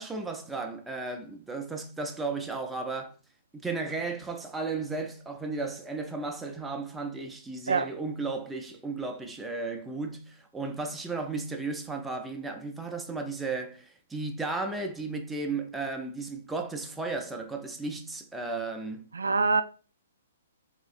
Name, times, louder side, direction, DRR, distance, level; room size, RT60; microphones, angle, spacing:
voice 1, 0.0-3.1 3.5-19.0, right 3 dB, 5° right, 0.5 m, -34 dB
voice 2, 19.1-19.6, right 4 dB, 75° right, 0.3 m, -24 dB
3.7 x 3.2 x 2.4 m
figure-of-eight pair, 120°, 0 cm